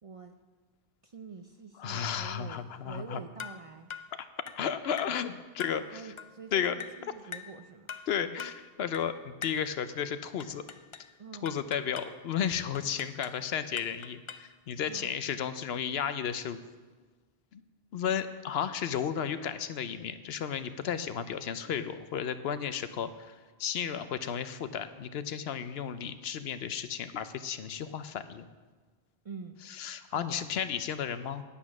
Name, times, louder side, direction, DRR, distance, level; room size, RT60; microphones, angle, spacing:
voice 1, 0.0-0.3 1.0-3.9 5.9-7.9 11.2-11.5 14.9-15.1 29.2-29.6 30.0-30.5, right 4 dB, 45° right, 6 dB, 0.5 m, -46 dB
voice 2, 1.8-3.2 4.6-6.1 6.5-6.8 8.1-10.6 11.4-16.6 17.5-17.6 17.9-28.4 29.7-31.4, left 8 dB, 75° left, 11 dB, 0.9 m, -33 dB
sound 1, 3.4-3.6 3.9-4.1 4.5-4.7 5.0-5.2 5.6-5.8 6.2-6.4 6.8-7.0 7.3-7.6 7.9-8.1 8.4-8.6 8.9-9.1 9.4-9.7 10.4-11.1 11.5-12.2 12.8-13.4 13.8-14.5, left 7 dB, 55° left, 0.3 m, -43 dB
9.8 x 8.5 x 6.0 m, 1.4 s
omnidirectional pair, 1.1 m